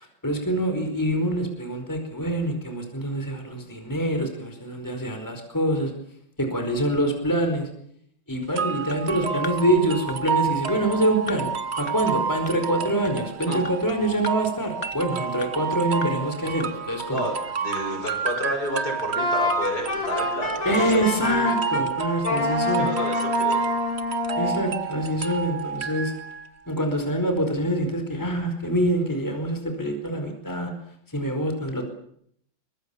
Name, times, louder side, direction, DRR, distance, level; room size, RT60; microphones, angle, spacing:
voice 1, 0.0-5.9 6.4-7.7 8.3-11.5 11.8-17.2 17.9-18.0 20.6-22.9 24.3-26.1 26.7-30.7 31.1-31.8, right 1 dB, 10° left, 5 dB, 4.8 m, -25 dB
sound 1, 8.5-26.5, right 6 dB, 40° right, 1.3 m, -30 dB
sound 2, 8.9-9.0 9.4-9.6 10.1-10.2 10.7-10.8 11.3-11.4 11.9-12.0 12.5-12.6 13.1-13.2 13.7-13.8 14.2-14.4 14.8-14.9 15.4-15.5 16.0-16.1 16.6-16.7 17.2-17.3 17.8-17.9 18.4-18.5 19.0-19.1, left 5 dB, 30° left, 1.3 m, -37 dB
voice 2, 17.1-21.1 22.8-23.7, equal, 50° left, 4 dB, 7.0 m, -30 dB
Wind instrument woodwind instrument, 19.2-21.8 22.2-24.6, left 3 dB, 75° left, 6.5 m, -27 dB
24.0 x 24.0 x 7.1 m, 0.68 s
omnidirectional pair, 2.1 m